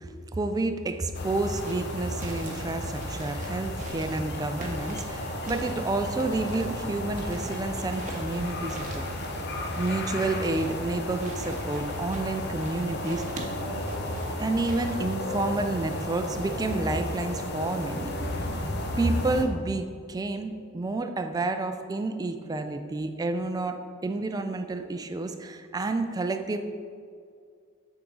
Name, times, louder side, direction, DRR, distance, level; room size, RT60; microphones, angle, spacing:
voice 1, 0.0-9.1 9.8-13.3 14.4-18.5 19.0-26.6, right 2 dB, 20° right, 7 dB, 0.3 m, -30 dB
sound 1, 1.1-19.4, left 1 dB, 50° left, 0.7 m, -33 dB
sound 2, 1.6-14.9, right 2 dB, 35° right, 0.8 m, -45 dB
8.6 x 3.6 x 3.9 m, 2.2 s
head